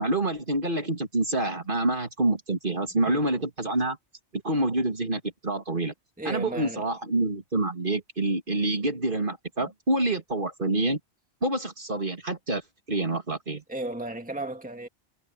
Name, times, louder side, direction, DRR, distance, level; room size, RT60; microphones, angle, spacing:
voice 1, 0.0-4.0 4.3-5.9 6.2-11.0 11.4-12.6 12.9-13.6, right 2 dB, 45° right, 2.8 m, -27 dB
voice 2, 6.2-6.9 9.6-9.7 13.7-14.9, right 1 dB, 5° right, 2.1 m, -34 dB
omnidirectional pair, 1.2 m